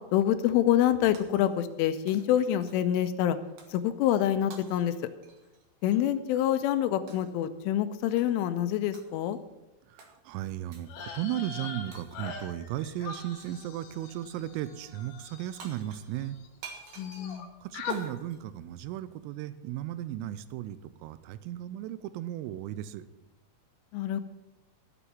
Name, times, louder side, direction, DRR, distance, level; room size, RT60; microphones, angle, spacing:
voice 1, 0.1-3.4 3.7-4.9 5.8-9.4 17.0-17.5 23.9-24.2, left 11 dB, 85° left, 10 dB, 3.0 m, -26 dB
Shatter, 1.1-1.8 2.1-3.0 3.6-3.8 4.5-6.1 7.1-7.4 8.2-8.5 8.9-9.4 10.0-10.2 10.7-11.0 11.9-12.5 13.4-13.7 15.3-15.4 15.6-19.2, right 5 dB, 65° right, 2.2 m, -51 dB
voice 2, 9.9-16.4 17.6-23.0, right 12 dB, 85° right, 14 dB, 3.3 m, -36 dB
sound 1, 10.9-16.5 16.7-17.5 17.7-18.0, left 6 dB, 65° left, 3.7 m, -42 dB
13.5 x 7.0 x 7.3 m, 1.0 s
omnidirectional pair, 5.8 m